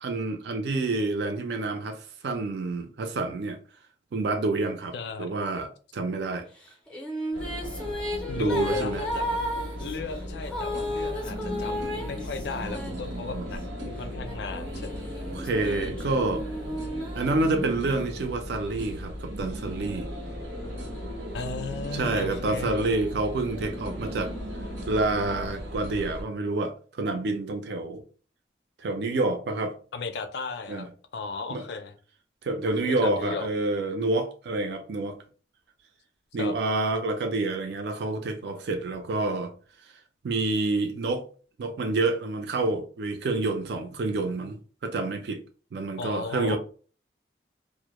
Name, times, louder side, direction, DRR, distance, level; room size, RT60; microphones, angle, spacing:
voice 1, 0.0-3.6 4.1-6.5 8.3-9.0 12.9-13.5 15.3-16.4 17.1-20.1 21.9-24.3 24.9-28.0 28.8-29.7 30.7-30.9 31.5-31.6 32.4-35.2 36.3-39.5 40.2-41.3 41.6-45.4 45.7-46.6, right 2 dB, 65° right, 0.4 m, -28 dB
voice 2, 4.9-5.3 8.3-9.4 9.8-15.0 15.6-16.1 21.3-22.9 29.9-30.9 31.1-31.9 32.7-33.5 36.4-36.6 46.0-46.6, left 4 dB, 65° left, 0.4 m, -35 dB
Female singing, 6.6-13.5 14.2-18.0, equal, 5° left, 0.4 m, -34 dB
sound 1, 7.3-26.2, equal, 90° right, 0.8 m, -36 dB
2.1 x 2.0 x 2.8 m
head